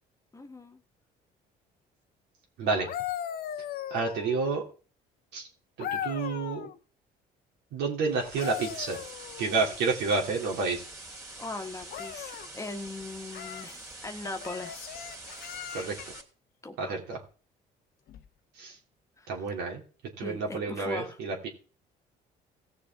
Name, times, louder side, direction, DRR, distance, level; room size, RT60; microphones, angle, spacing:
voice 1, 0.3-0.8 11.4-14.8 16.6-16.9 20.2-21.2, left 2 dB, 20° left, 5 dB, 1.3 m, -39 dB
voice 2, 2.6-2.9 3.9-4.6 5.3-5.5 5.8-6.7 7.7-9.0 9.4-10.8 15.7-15.9 16.8-17.2 18.6-18.7 19.3-19.8 20.2-21.5, right 4 dB, 85° right, 0 dB, 2.9 m, -29 dB
sound 1, 2.7-4.7 5.8-6.8 8.2-9.8 11.9-12.5 13.3-13.7 14.4-16.2 18.1-18.3, left 10 dB, 65° left, 0.8 m, -38 dB
sound 2, 8.1-16.2, right 2 dB, 15° right, 2.8 m, -45 dB
17.0 x 6.9 x 3.6 m, 0.38 s
cardioid pair, 110°, 17 cm